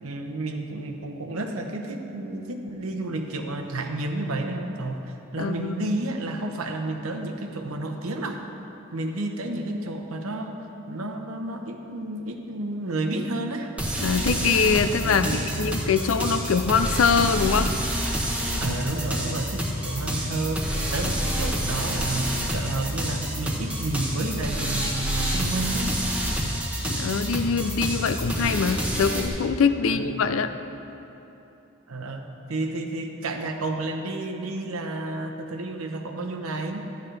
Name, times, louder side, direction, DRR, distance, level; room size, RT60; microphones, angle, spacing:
voice 1, 0.0-8.4 8.9-10.6 10.9-13.7 15.0-15.8 18.6-25.9 29.8-30.3 31.9-36.9, right 2 dB, 90° right, 3 dB, 0.9 m, -31 dB
voice 2, 5.4-5.9 14.0-15.3 15.6-17.7 26.8-30.5, left 5 dB, 75° left, 10 dB, 0.4 m, -23 dB
sound 1, 13.8-29.3, equal, 5° right, 0.9 m, -28 dB
12.0 x 10.5 x 3.3 m, 3.0 s
head